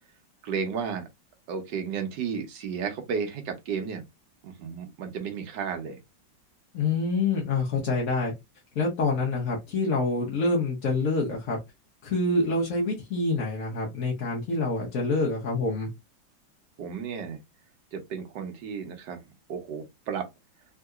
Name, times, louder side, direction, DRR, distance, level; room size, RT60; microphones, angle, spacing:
voice 1, 0.4-1.0 1.5-4.0 4.4-6.0 16.8-17.4 17.9-19.2 19.5-20.3, right 6 dB, 70° right, 1.4 m, -33 dB
voice 2, 6.7-8.3 8.7-11.6 12.0-15.9, left 3 dB, 55° left, 1.2 m, -26 dB
3.6 x 2.8 x 2.3 m
omnidirectional pair, 2.0 m